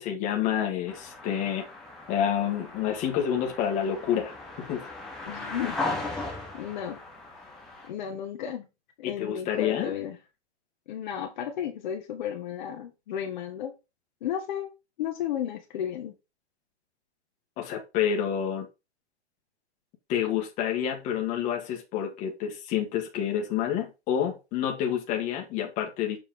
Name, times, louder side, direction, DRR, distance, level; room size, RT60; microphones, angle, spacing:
voice 1, 0.0-1.6 2.1-4.9 9.0-9.9 17.6-18.7 20.1-26.2, left 9 dB, 20° left, 1.5 m, -28 dB
sound 1, 0.9-7.9, left 2 dB, ahead, 0.9 m, -37 dB
voice 2, 5.3-5.8 6.1-7.0 7.9-8.7 9.0-10.2 10.9-13.7 14.2-14.7 15.0-16.1, left 9 dB, 45° left, 1.3 m, -33 dB
6.9 x 4.4 x 3.8 m
hypercardioid pair, 155°, 34 cm